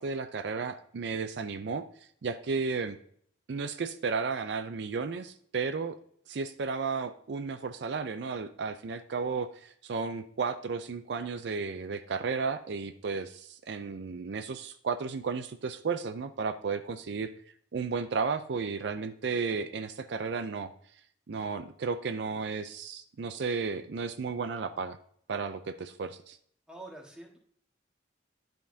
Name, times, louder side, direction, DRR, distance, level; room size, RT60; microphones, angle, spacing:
voice 1, 0.0-1.9 2.2-3.0 3.5-6.0 6.3-17.3 17.7-20.7 21.3-25.0 25.3-26.4, right 5 dB, 65° right, 10 dB, 0.4 m, -33 dB
voice 2, 26.7-27.4, right 2 dB, 5° right, 0 dB, 1.3 m, -46 dB
11.5 x 5.2 x 2.7 m, 0.62 s
head